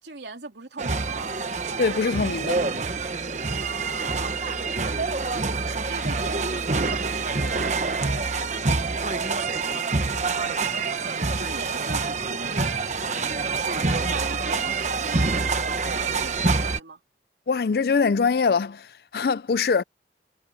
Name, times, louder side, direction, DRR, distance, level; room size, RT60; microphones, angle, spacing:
voice 1, 0.0-1.6 3.6-4.2 5.9-8.0 11.0-17.0, right 3 dB, 75° right, 3.1 m, -40 dB
sound 1, 0.8-16.8, right 4 dB, 40° right, 1.1 m, -26 dB
voice 2, 1.8-2.6 17.5-19.8, left 5 dB, 60° left, 0.4 m, -23 dB
head